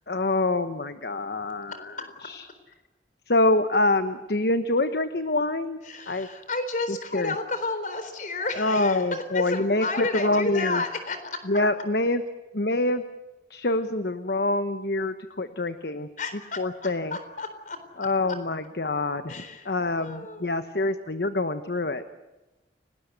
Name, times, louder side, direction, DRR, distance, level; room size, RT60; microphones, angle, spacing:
voice 1, 0.1-1.9 2.2-2.4 3.3-5.8 6.1-6.3 7.1-7.3 8.6-10.8 11.5-12.2 12.5-13.0 13.5-16.1 16.6-17.2 18.0-22.0, left 2 dB, 60° left, 9 dB, 1.1 m, -25 dB
voice 2, 5.8-11.6 16.2-17.8 19.3-19.7 20.0-20.5, left 3 dB, 45° left, 9 dB, 4.0 m, -32 dB
29.5 x 19.5 x 8.2 m, 1.1 s
head